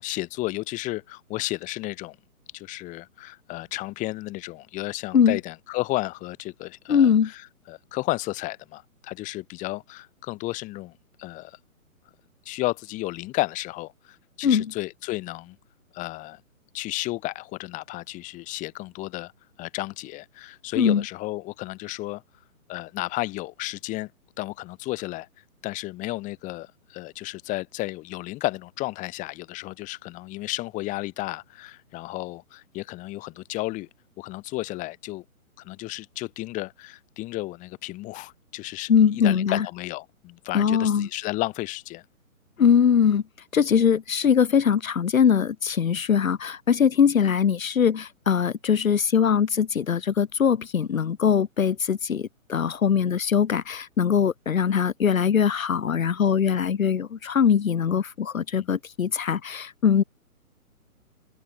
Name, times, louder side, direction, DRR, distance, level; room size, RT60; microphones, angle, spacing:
voice 1, 0.0-2.2 2.5-7.4 7.7-10.9 11.2-11.6 12.5-15.6 15.9-16.4 16.7-19.3 19.6-22.2 22.7-24.1 24.4-25.3 25.6-33.9 34.2-35.2 35.6-42.0 58.5-58.7, left 19 dB, 15° left, 2.1 m, -33 dB
voice 2, 6.9-7.3 14.4-14.6 20.8-21.0 38.9-39.7 40.5-41.1 42.6-43.2 43.5-60.0, left 7 dB, 65° left, 1.6 m, -21 dB
figure-of-eight pair, 140°, 43 cm